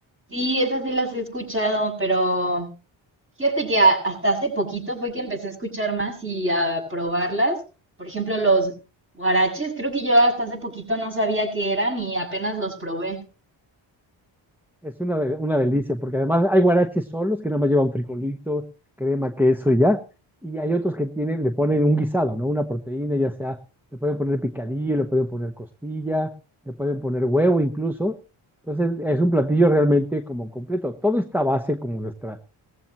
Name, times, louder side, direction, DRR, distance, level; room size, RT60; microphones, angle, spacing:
voice 1, 0.3-2.7 3.4-7.6 8.0-8.7 9.2-13.2, right 1 dB, 25° right, 1 dB, 7.1 m, -23 dB
voice 2, 14.8-18.7 19.0-20.0 20.4-23.6 24.0-26.3 26.7-28.2 28.7-32.4, equal, 5° right, 5 dB, 0.9 m, -22 dB
19.0 x 15.0 x 3.0 m, 0.34 s
cardioid pair, 90°, 48 cm